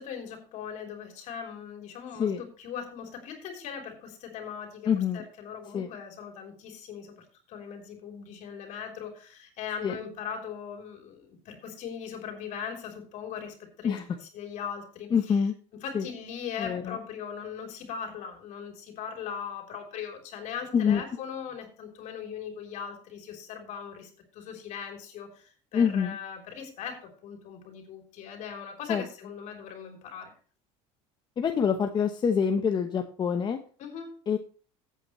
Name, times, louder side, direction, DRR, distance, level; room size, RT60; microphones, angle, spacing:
voice 1, 0.0-15.4 15.8-30.3 33.8-34.2, left 7 dB, 55° left, 3 dB, 3.5 m, -40 dB
voice 2, 4.9-5.2 5.7-5.9 9.8-10.0 13.8-14.0 15.1-15.5 15.9-16.1 16.6-17.0 20.7-21.0 25.7-26.2 28.9-29.0 31.4-33.6 34.3-34.4, left 7 dB, 30° left, 5 dB, 0.9 m, -26 dB
14.5 x 8.3 x 3.1 m, 0.40 s
supercardioid pair, 115°, 15 cm